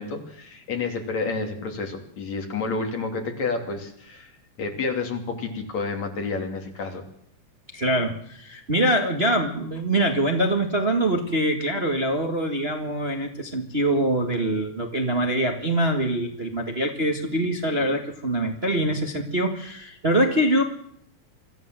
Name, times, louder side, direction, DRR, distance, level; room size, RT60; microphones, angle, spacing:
voice 1, 0.0-4.3 4.6-7.0, left 4 dB, 60° left, 4 dB, 4.1 m, -30 dB
voice 2, 7.7-20.6, right 1 dB, 25° right, 3 dB, 1.7 m, -24 dB
25.0 x 14.5 x 7.7 m, 0.67 s
omnidirectional pair, 3.6 m